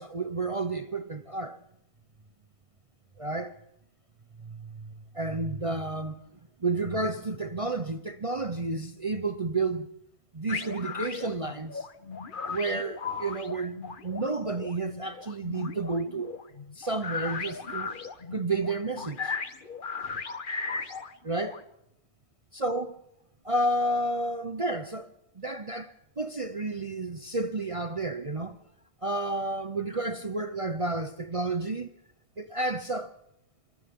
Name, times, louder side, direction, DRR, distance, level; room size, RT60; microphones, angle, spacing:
voice 1, 0.0-1.6 3.2-3.6 4.4-4.7 5.1-6.1 6.6-9.9 10.3-11.9 12.5-16.4 16.8-17.9 18.3-19.3 21.2-21.6 22.5-23.0 23.4-28.6 29.0-31.9 32.4-33.1, right 2 dB, 40° right, 0.4 m, -31 dB
sound 1, 10.5-21.6, left 5 dB, 35° left, 1.1 m, -37 dB
27.5 x 26.0 x 3.7 m
omnidirectional pair, 1.8 m